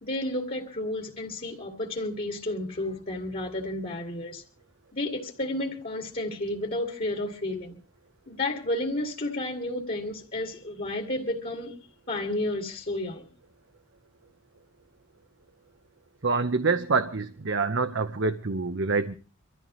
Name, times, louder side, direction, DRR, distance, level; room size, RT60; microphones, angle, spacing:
voice 1, 0.0-4.4 4.9-7.8 8.3-11.8 12.1-13.3, left 1 dB, 40° left, 2.4 m, -31 dB
voice 2, 16.2-19.2, right 4 dB, 55° right, 0.8 m, -26 dB
25.5 x 14.5 x 3.1 m
head